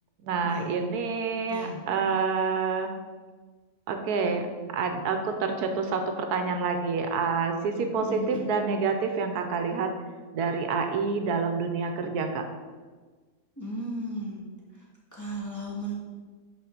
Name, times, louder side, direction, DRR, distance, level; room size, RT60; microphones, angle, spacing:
voice 1, 0.2-2.9 3.9-9.9 10.3-12.4, right 5 dB, 80° right, 6 dB, 1.2 m, -28 dB
voice 2, 8.0-8.5 13.6-14.5 14.7-14.9 15.1-15.9, equal, 10° left, -7 dB, 2.0 m, -35 dB
5.8 x 4.5 x 6.5 m, 1.4 s
omnidirectional pair, 1.6 m